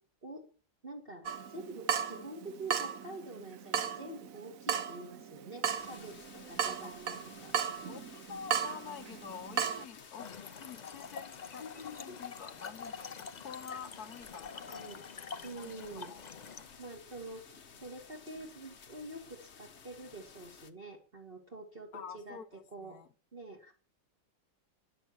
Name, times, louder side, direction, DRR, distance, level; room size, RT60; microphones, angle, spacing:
voice 1, 0.8-7.5 14.7-15.0 15.4-16.1 16.8-17.4 17.8-23.0 23.3-23.7, right 2 dB, 30° right, 2.6 m, -46 dB
Water tap faucet / Drip, 1.3-9.9, right 7 dB, 55° right, 1.1 m, -36 dB
sound 1, 5.7-20.7, left 6 dB, 40° left, 1.2 m, -55 dB
voice 2, 7.9-14.8 15.6-16.2 21.9-23.1, left 7 dB, 60° left, 1.4 m, -48 dB
Trickle dribble / Fill (with liquid), 10.1-16.8, left 6 dB, 90° left, 0.3 m, -46 dB
13.5 x 10.5 x 7.2 m
omnidirectional pair, 2.0 m